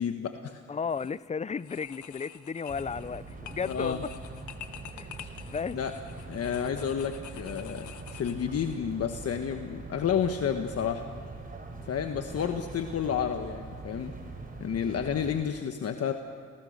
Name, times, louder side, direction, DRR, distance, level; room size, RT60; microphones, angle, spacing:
voice 1, 0.0-0.6 3.6-4.0 5.2-5.3 5.7-5.9 6.3-11.0 11.9-14.1 14.6-16.1, left 8 dB, 55° left, 6 dB, 1.3 m, -30 dB
voice 2, 0.7-4.1 4.9-5.8, left 6 dB, 25° left, 19 dB, 0.5 m, -34 dB
sound 1, 0.8-1.2 1.6-8.8, left 10 dB, 75° left, 1.3 m, -48 dB
sound 2, 2.7-15.4, right 3 dB, 30° right, 4.0 m, -43 dB
29.0 x 18.5 x 6.5 m, 2.4 s
cardioid pair, 90°, 30 cm